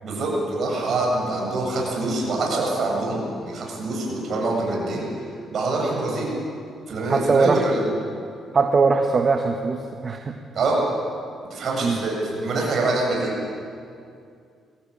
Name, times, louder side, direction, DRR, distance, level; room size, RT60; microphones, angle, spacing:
voice 1, 0.0-5.1 5.5-6.3 6.9-7.9 10.5-10.8 11.5-13.3, right 2 dB, 60° right, -2 dB, 7.8 m, -25 dB
voice 2, 7.1-7.7 8.5-10.3 11.8-12.0, right 4 dB, 40° right, 4 dB, 1.4 m, -20 dB
22.5 x 16.5 x 8.7 m, 2.4 s
cardioid pair, 90°, 0 cm